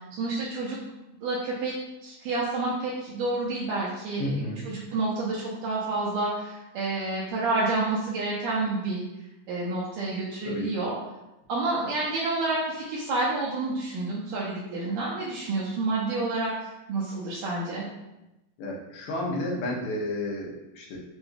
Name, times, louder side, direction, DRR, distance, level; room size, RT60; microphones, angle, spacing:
voice 1, 0.2-0.8 1.2-1.7 2.0-9.0 9.5-10.9 11.5-17.8, right 2 dB, 85° right, -6 dB, 1.9 m, -29 dB
voice 2, 4.2-4.6 10.5-10.7 18.6-21.0, left 1 dB, 85° left, -2 dB, 2.7 m, -31 dB
7.6 x 2.6 x 2.2 m, 0.95 s
omnidirectional pair, 4.3 m